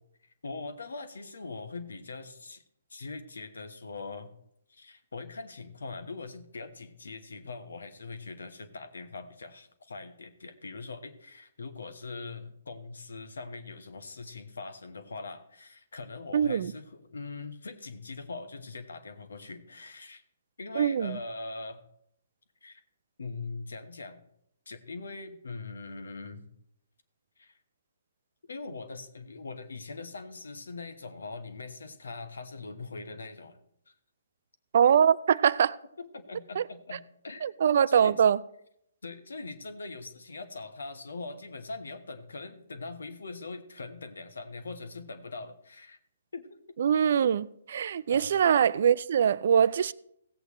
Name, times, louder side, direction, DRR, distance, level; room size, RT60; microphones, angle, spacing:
voice 1, 0.2-2.6 2.9-4.3 4.7-20.2 20.6-21.8 22.6-22.8 23.2-24.2 24.7-26.4 27.4-27.6 28.5-33.6 33.9-34.0 36.0-37.5 37.9-38.2 39.0-46.0 46.3-46.6 48.1-48.3, left 3 dB, 75° left, 1.2 m, -42 dB
voice 2, 16.3-16.7 20.8-21.2 34.7-35.8 36.6-36.7 37.4-38.4 46.8-49.9, right 8 dB, 60° right, 0.4 m, -23 dB
16.5 x 8.1 x 3.1 m
figure-of-eight pair, 130°, 0 cm